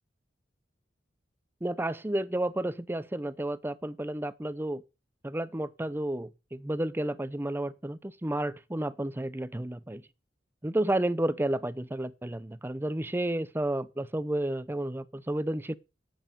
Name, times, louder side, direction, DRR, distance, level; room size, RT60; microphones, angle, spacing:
voice 1, 1.6-4.8 5.2-10.0 10.6-15.7, right 1 dB, 10° right, 0.6 m, -31 dB
10.5 x 8.0 x 6.6 m
head